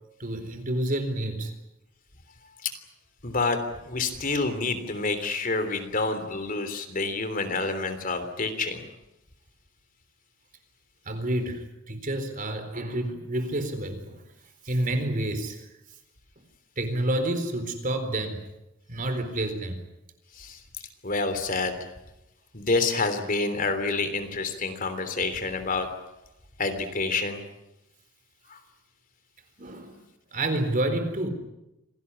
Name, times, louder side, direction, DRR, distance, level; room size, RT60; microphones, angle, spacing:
voice 1, 0.2-1.5 11.1-14.2 14.6-15.7 16.8-18.4 18.9-19.8 29.6-30.0 30.3-31.3, right 1 dB, 40° right, 4.1 m, -29 dB
voice 2, 3.2-3.6 3.8-8.8 20.4-20.6 21.0-21.9 22.5-25.9 26.6-27.4 28.5-28.6, left 3 dB, 45° left, 3.2 m, -28 dB
27.0 x 18.5 x 9.8 m
head